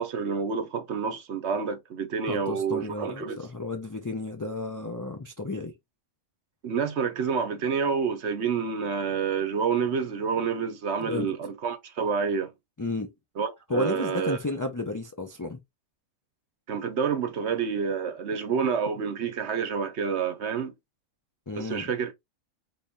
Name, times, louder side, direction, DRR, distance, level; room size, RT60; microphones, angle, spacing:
voice 1, 0.0-3.4 6.6-12.5 13.4-14.4 16.7-20.7 21.6-22.1, right 6 dB, 60° right, 1.0 m, -28 dB
voice 2, 2.3-5.7 11.0-11.3 12.8-13.1 13.7-15.6 21.5-21.9, left 2 dB, 30° left, 0.3 m, -32 dB
5.3 x 3.7 x 2.7 m
omnidirectional pair, 1.4 m